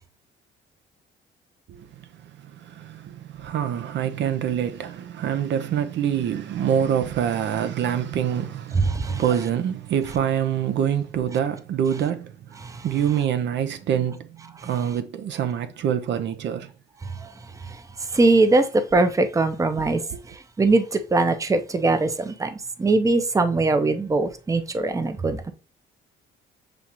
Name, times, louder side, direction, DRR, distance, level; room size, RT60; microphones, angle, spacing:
voice 1, 1.7-16.7 19.8-20.2, right 9 dB, 65° right, 0.5 m, -26 dB
voice 2, 18.1-18.6 18.9-20.0 20.6-20.8 21.1-22.5 22.8-25.5, right 2 dB, 15° right, 0.5 m, -21 dB
6.9 x 2.4 x 2.9 m
cardioid pair, 90°, 20 cm